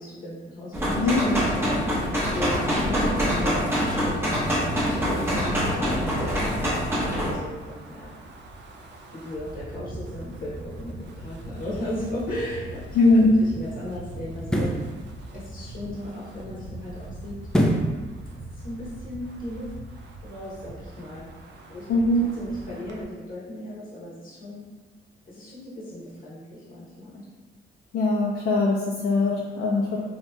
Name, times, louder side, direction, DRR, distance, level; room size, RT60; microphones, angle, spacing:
voice 1, 0.0-8.1 9.1-13.0 13.4-14.8 15.3-17.4 18.5-19.8 20.2-21.3 21.7-21.9 22.3-24.7 25.3-27.2, left 1 dB, 45° left, -8 dB, 0.8 m, -36 dB
sound 1, 0.7-7.3, equal, 10° right, 0.8 m, -25 dB
Wind, 4.6-23.0, right 1 dB, 60° right, 0.4 m, -41 dB
sound 2, 12.7-12.8 14.4-14.9 17.5-18.0 18.4-18.5, equal, 5° left, 0.3 m, -22 dB
voice 2, 12.9-13.3 21.9-22.3 27.9-30.0, left 2 dB, 70° left, -3 dB, 0.4 m, -21 dB
2.8 x 2.7 x 2.2 m, 1.3 s
cardioid pair, 90°, 20 cm